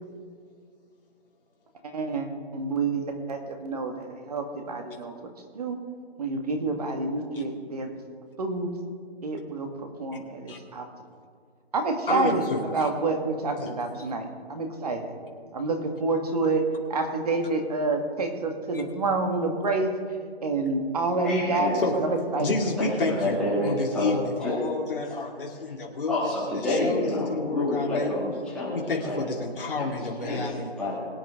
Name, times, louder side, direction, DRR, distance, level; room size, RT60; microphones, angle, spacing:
voice 1, 1.8-2.3 2.5-5.1 5.6-5.8 6.2-7.9 8.4-8.7 9.2-10.9 11.7-12.5 12.7-15.1 15.5-16.6 16.9-19.9 20.4-22.6, right 3 dB, 35° right, 4 dB, 1.7 m, -28 dB
voice 2, 12.1-12.9 13.6-13.7 18.7-18.8 21.7-22.0 22.4-26.3 26.7-28.2 28.7-30.7, left 3 dB, 55° left, -2 dB, 2.6 m, -30 dB
voice 3, 21.2-21.8 22.8-24.1 24.4-24.6 26.1-28.8 29.0-29.2 29.8-31.0, left 1 dB, ahead, -9 dB, 2.2 m, -28 dB
22.5 x 9.1 x 3.7 m, 2.1 s
hypercardioid pair, 170°, 32 cm